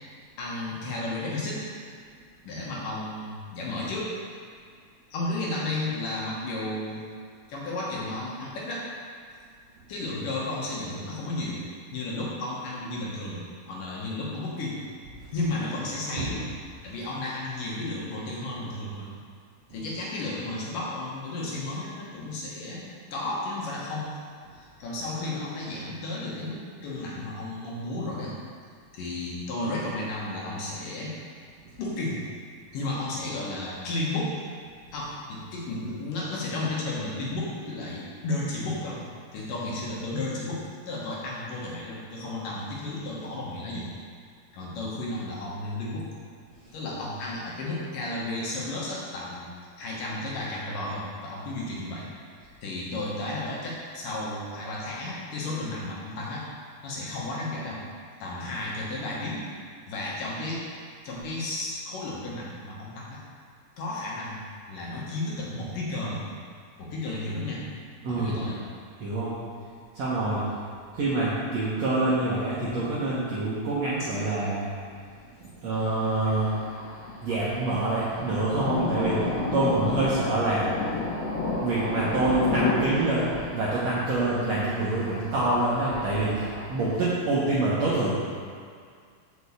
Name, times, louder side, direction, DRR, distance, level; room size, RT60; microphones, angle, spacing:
voice 1, 0.4-1.6 2.5-4.1 5.1-7.1 7.5-8.9 9.9-11.6 11.9-14.8 15.3-16.4 16.8-19.1 19.7-22.8 23.1-24.1 24.5-28.4 28.9-31.2 31.8-32.2 32.7-34.3 34.9-39.0 39.3-43.9 44.5-46.1 46.7-52.1 52.4-56.5 56.8-57.8 58.2-59.4 59.9-60.7 61.0-63.2 63.8-64.4 64.7-66.3 66.8-67.7 68.1-68.6 74.0-74.1 84.1-84.2, left 2 dB, 70° left, -5 dB, 2.5 m, -33 dB
voice 2, 68.0-68.4 69.0-69.3 69.9-70.6 70.9-74.7 75.4-76.6 77.2-80.7 81.6-88.1, right 2 dB, 70° right, -8 dB, 1.6 m, -26 dB
Thunder, 75.7-87.0, left 3 dB, 85° left, 2.9 m, -32 dB
6.6 x 5.3 x 7.0 m, 2.1 s
omnidirectional pair, 4.5 m